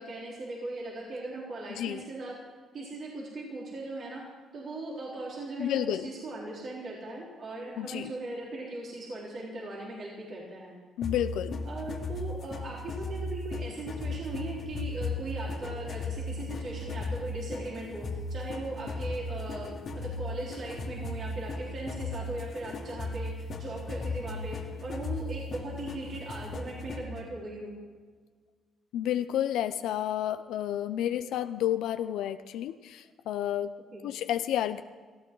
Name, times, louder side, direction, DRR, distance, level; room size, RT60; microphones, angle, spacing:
voice 1, 0.0-2.3 2.7-4.2 4.5-10.8 11.7-27.7 33.9-34.0, right 2 dB, 55° right, -5 dB, 4.1 m, -39 dB
voice 2, 5.6-6.1 7.8-8.1 11.0-11.6 28.9-33.7 34.0-34.8, left 11 dB, 85° left, 10 dB, 0.5 m, -30 dB
sound 1, 11.0-27.2, left 2 dB, 55° left, 2.1 m, -36 dB
18.5 x 15.0 x 3.9 m, 1.5 s
cardioid pair, 90°, 0 cm